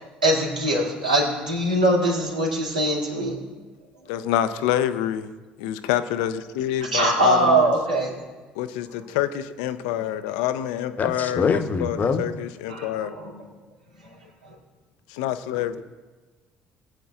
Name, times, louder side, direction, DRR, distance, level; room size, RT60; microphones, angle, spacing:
voice 1, 0.0-3.4 6.8-8.1 12.7-13.3, right 1 dB, 90° right, -4 dB, 2.6 m, -22 dB
voice 2, 4.1-5.3 5.6-7.7 8.6-13.1 15.1-15.8, left 11 dB, 70° left, 12 dB, 0.6 m, -27 dB
voice 3, 11.0-12.3, left 5 dB, 40° left, 9 dB, 1.0 m, -24 dB
20.0 x 8.9 x 2.5 m, 1.3 s
figure-of-eight pair, 55°, 4 cm